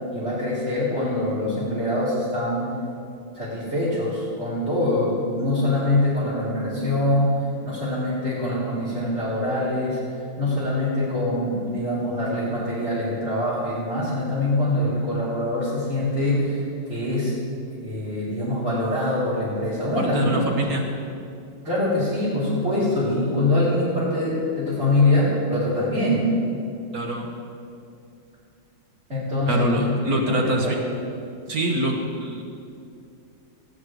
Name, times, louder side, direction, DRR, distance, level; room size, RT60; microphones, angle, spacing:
voice 1, 0.1-2.7 3.3-10.0 10.4-17.3 17.8-20.4 21.6-26.3 29.1-30.9, left 1 dB, 30° right, -12 dB, 4.5 m, -24 dB
voice 2, 20.0-20.8 26.9-27.3 29.5-30.7 31.5-32.4, right 1 dB, 45° right, 2 dB, 1.6 m, -24 dB
18.5 x 9.7 x 4.9 m, 2.5 s
omnidirectional pair, 2.3 m